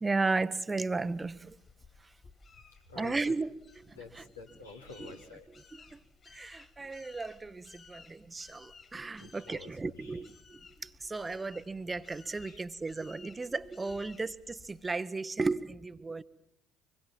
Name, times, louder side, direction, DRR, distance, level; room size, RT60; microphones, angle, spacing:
voice 1, 0.0-1.6 3.0-3.5 3.9-4.2 5.0-5.1 5.9-6.0 6.3-16.2, right 3 dB, 20° right, 14 dB, 1.0 m, -35 dB
sound 1, 1.0-14.9, left 5 dB, 40° left, 3.3 m, -57 dB
voice 2, 2.9-3.3 3.9-5.5 9.2-10.2 12.5-12.6, left 4 dB, 85° left, 0 dB, 2.7 m, -49 dB
25.0 x 21.5 x 7.6 m, 0.78 s
figure-of-eight pair, 55°, 0 cm